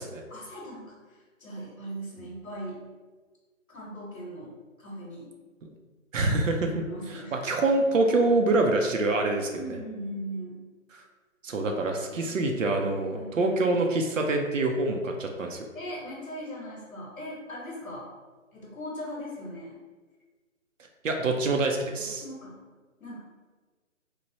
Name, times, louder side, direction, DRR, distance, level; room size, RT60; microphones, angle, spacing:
voice 1, 0.3-2.8 3.7-5.3 6.8-7.4 9.5-10.6 11.8-12.4 13.1-13.6 15.7-18.1 18.5-19.8 22.0-22.6 23.0-23.2, equal, 80° left, -4 dB, 0.9 m, -39 dB
voice 2, 6.1-9.6 10.9-11.0 11.4-15.7 21.0-22.2, right 2 dB, 70° right, 3 dB, 0.5 m, -26 dB
3.1 x 2.1 x 2.7 m, 1.4 s
figure-of-eight pair, 160°, 40 cm